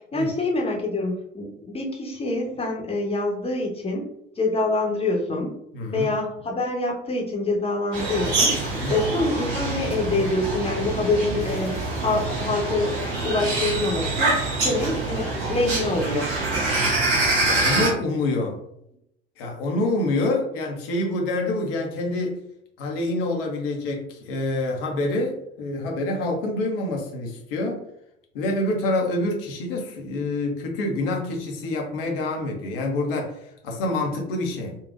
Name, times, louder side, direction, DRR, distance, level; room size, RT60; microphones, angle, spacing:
voice 1, 0.1-4.1 4.4-5.5 5.9-8.5 8.9-12.9 13.2-16.3, left 2 dB, 20° left, 0 dB, 1.0 m, -25 dB
voice 2, 5.7-6.1 8.7-9.0 17.4-18.6 19.4-22.4 22.8-27.8 28.3-34.8, left 2 dB, 65° left, 1 dB, 0.9 m, -27 dB
sound 1, 7.9-17.9, right 2 dB, 60° right, 1.2 m, -25 dB
3.9 x 2.4 x 2.5 m, 0.76 s
figure-of-eight pair, 60°, 31 cm